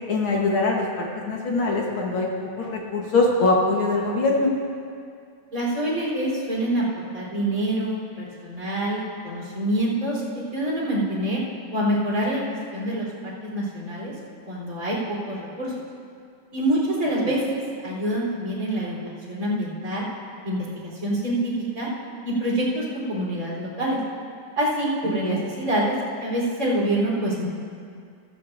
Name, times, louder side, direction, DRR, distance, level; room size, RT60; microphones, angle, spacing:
voice 1, 0.1-2.3 2.6-4.5 25.2-25.4, left 3 dB, 55° left, -2 dB, 1.6 m, -22 dB
voice 2, 5.5-11.4 11.7-13.1 13.4-14.1 14.5-15.7 16.5-20.0 20.4-21.9 22.2-24.0 24.5-25.9 26.2-27.4, right 1 dB, 25° right, -6 dB, 4.0 m, -26 dB
15.5 x 15.0 x 2.6 m, 2.2 s
omnidirectional pair, 3.5 m